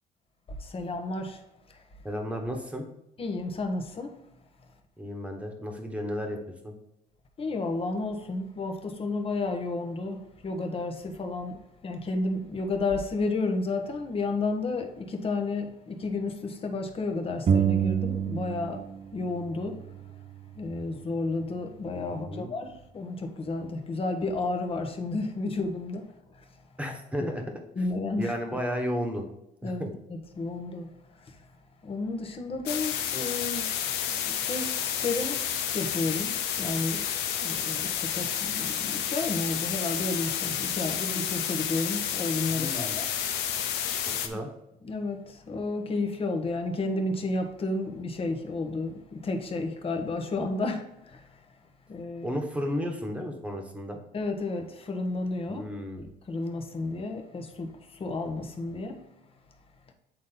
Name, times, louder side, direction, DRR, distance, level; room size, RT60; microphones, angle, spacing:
voice 1, 0.5-1.4 1.7-1.8 3.2-4.2 7.4-18.9 19.1-19.9 20.5-26.4 27.8-28.3 29.6-31.4 31.8-33.9 34.2-37.1 37.4-43.1 43.4-43.9 44.3-44.4 44.8-51.4 51.9-52.4 54.1-55.6 56.0-59.0, left 3 dB, 35° left, 1.2 m, -32 dB
voice 2, 2.0-2.8 5.0-6.4 6.6-6.7 22.1-22.5 26.8-27.4 28.2-29.2 29.6-29.9 42.5-43.0 44.2-44.5 52.2-54.0 55.5-56.0, equal, 5° right, 1.4 m, -33 dB
sound 1, 17.5-19.0 19.2-21.0, right 8 dB, 35° right, 0.6 m, -29 dB
sound 2, 32.7-44.3, left 9 dB, 85° left, 0.8 m, -30 dB
8.4 x 4.2 x 3.9 m
cardioid pair, 110°, 17 cm